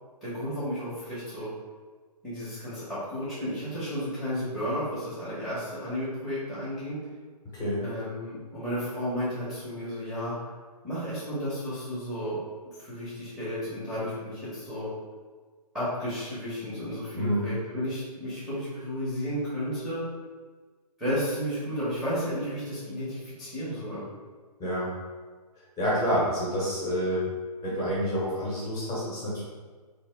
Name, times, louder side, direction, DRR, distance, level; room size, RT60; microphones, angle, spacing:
voice 1, 0.2-1.5 2.2-7.0 7.8-10.3 10.8-12.4 12.8-14.9 15.7-20.0 21.0-24.0, equal, ahead, -12 dB, 0.8 m, -33 dB
voice 2, 17.1-17.5 24.6-24.9 25.8-27.3 27.6-29.4, equal, 20° left, -7 dB, 1.0 m, -28 dB
3.5 x 2.7 x 3.3 m, 1.5 s
hypercardioid pair, 145°, 21 cm